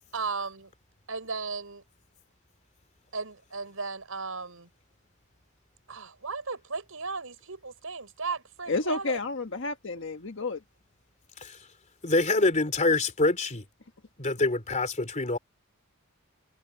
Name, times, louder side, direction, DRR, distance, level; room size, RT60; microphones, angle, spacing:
voice 1, 0.1-0.7 1.1-1.8 3.1-4.7 5.9-9.2, right 4 dB, 80° right, 5.3 m, -35 dB
voice 2, 8.7-10.6, left 3 dB, 65° left, 1.4 m, -31 dB
voice 3, 12.0-13.6 14.2-15.4, left 2 dB, 35° left, 3.2 m, -25 dB
head